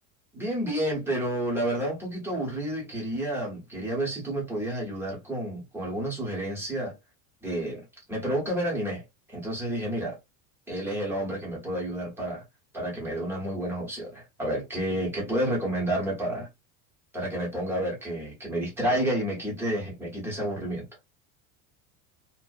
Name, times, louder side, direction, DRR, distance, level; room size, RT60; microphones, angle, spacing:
voice 1, 0.3-7.0 7.4-10.2 10.7-12.4 12.7-16.5 17.1-20.9, right 1 dB, 5° right, 0.8 m, -30 dB
2.5 x 2.1 x 2.4 m
cardioid pair, 170°, 42 cm